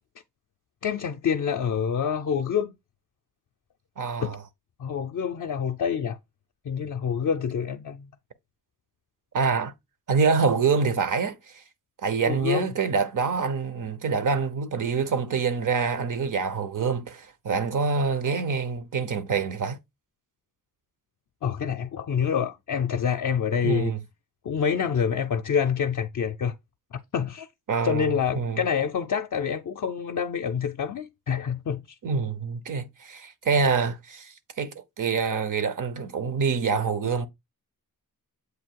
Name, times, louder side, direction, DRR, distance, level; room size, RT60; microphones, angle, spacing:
voice 1, 0.8-2.7 4.2-4.4 4.8-6.2 6.6-8.1 12.2-12.7 21.4-23.9 24.4-26.5 26.9-27.5 27.8-31.8, left 7 dB, 55° left, 0.5 m, -27 dB
voice 2, 4.0-4.4 9.3-9.7 10.1-11.6 12.0-19.8 23.6-24.0 27.7-28.6 32.0-37.3, right 5 dB, 55° right, 0.8 m, -26 dB
8.0 x 2.7 x 4.5 m
wide cardioid pair, 165°, 37 cm